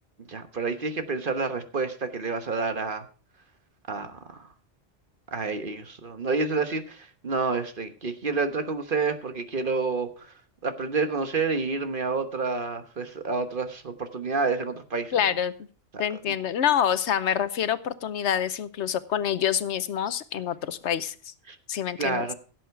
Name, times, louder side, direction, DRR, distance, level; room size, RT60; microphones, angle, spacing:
voice 1, 0.3-3.1 3.9-4.5 5.3-10.3 10.6-15.2 16.3-16.4 21.5-21.6 22.0-22.3, right 4 dB, 50° right, 8 dB, 1.3 m, -29 dB
voice 2, 15.1-15.5 16.0-21.3 21.7-22.2, left 9 dB, 75° left, 14 dB, 1.1 m, -26 dB
16.0 x 7.9 x 4.5 m, 0.37 s
omnidirectional pair, 1.2 m